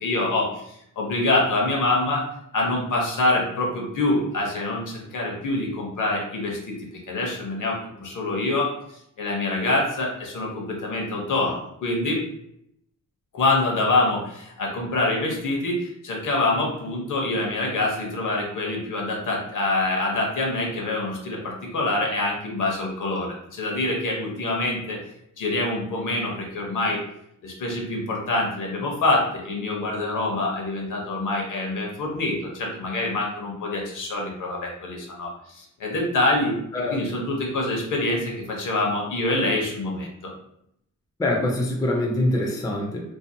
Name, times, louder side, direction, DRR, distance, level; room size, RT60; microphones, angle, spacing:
voice 1, 0.0-0.6 1.0-2.2 2.5-6.8 7.1-8.7 9.2-12.2 13.3-25.0 25.4-27.0 27.4-40.3, left 2 dB, 70° left, -1 dB, 0.8 m, -25 dB
voice 2, 41.2-43.0, left 1 dB, 10° left, -1 dB, 0.4 m, -24 dB
2.6 x 2.0 x 2.6 m, 0.74 s
wide cardioid pair, 130°, 32 cm